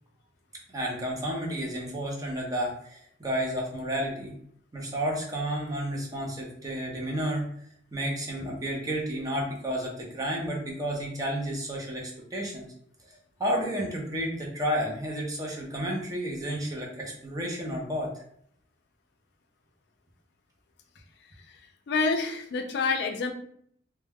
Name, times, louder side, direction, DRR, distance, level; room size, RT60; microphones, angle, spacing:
voice 1, 0.7-4.3 4.7-7.4 7.9-12.7 13.4-18.1, equal, 20° right, -2 dB, 0.6 m, -31 dB
voice 2, 21.9-23.3, left 4 dB, 65° left, 5 dB, 0.4 m, -27 dB
2.2 x 2.2 x 3.3 m, 0.65 s
head